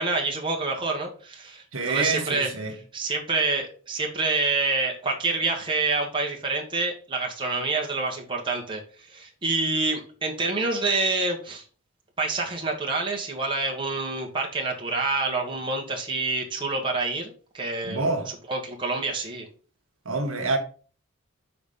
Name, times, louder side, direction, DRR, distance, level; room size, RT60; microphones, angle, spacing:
voice 1, 0.0-2.5 2.9-11.6 12.2-18.1 18.5-19.5, right 3 dB, 25° right, 1.4 m, -27 dB
voice 2, 1.7-2.8 17.9-18.3 20.0-20.6, right 3 dB, 80° right, 1.3 m, -26 dB
5.8 x 4.1 x 5.3 m
head